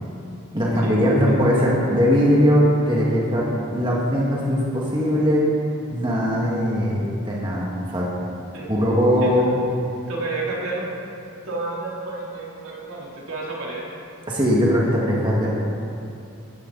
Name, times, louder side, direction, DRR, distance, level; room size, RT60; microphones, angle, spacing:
voice 1, 0.5-5.5 5.9-8.1 8.7-9.5 14.3-15.5, equal, 20° right, -5 dB, 2.1 m, -20 dB
voice 2, 10.1-10.9 11.5-13.8, right 3 dB, 70° right, -5 dB, 3.6 m, -30 dB
17.0 x 14.0 x 4.2 m, 2.7 s
head